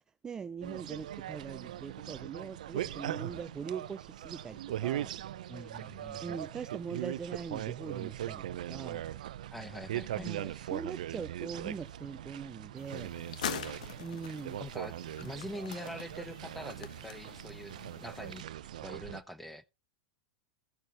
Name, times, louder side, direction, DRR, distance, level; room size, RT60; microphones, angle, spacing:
voice 1, 0.0-5.1 6.2-9.0 10.2-13.1 14.0-14.6, right 6 dB, 15° right, 0.5 m, -42 dB
sound 1, 0.6-19.2, right 12 dB, 80° right, 0.6 m, -40 dB
voice 2, 5.5-6.4 9.5-10.7 14.6-18.5 18.8-19.6, equal, 5° left, 0.9 m, -44 dB
sound 2, 12.8-18.4, left 9 dB, 85° left, 1.1 m, -44 dB
15.0 x 6.5 x 3.0 m
hypercardioid pair, 125°, 4 cm